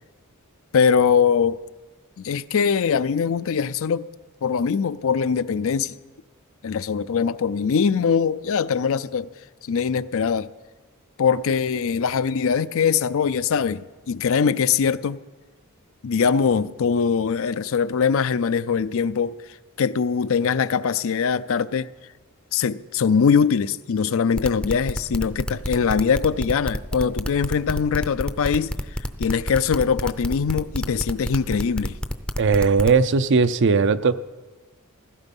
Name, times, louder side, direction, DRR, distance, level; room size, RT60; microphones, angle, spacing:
voice 1, 0.7-1.6 2.2-4.1 4.4-5.9 6.6-9.3 9.6-10.5 11.2-15.2 16.0-19.4 19.8-21.9 22.5-28.7 29.2-32.0, left 6 dB, 65° left, 0.5 m, -22 dB
sound 1, 24.4-33.0, equal, 5° left, 0.6 m, -28 dB
voice 2, 32.4-34.2, right 4 dB, 55° right, 0.5 m, -18 dB
16.0 x 14.0 x 5.4 m
head